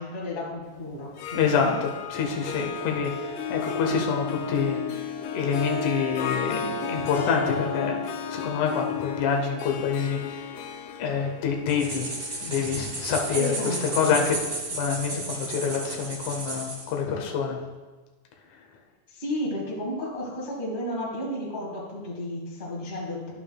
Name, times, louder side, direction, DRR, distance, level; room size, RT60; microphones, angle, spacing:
voice 1, 0.0-1.7 13.3-13.8 14.0-14.3 15.1-15.4 19.1-23.3, left 1 dB, 45° left, -3 dB, 0.6 m, -33 dB
Harp, 1.0-14.0, left 5 dB, 90° left, 2.8 m, -33 dB
voice 2, 1.3-8.0 8.3-10.6 11.0-12.1 12.4-14.4 14.7-17.6 18.5-18.6, left 6 dB, 70° left, 2 dB, 1.9 m, -27 dB
sound 1, 11.7-16.9, right 2 dB, 60° right, 0.9 m, -33 dB
11.0 x 8.7 x 2.3 m, 1.3 s
omnidirectional pair, 4.6 m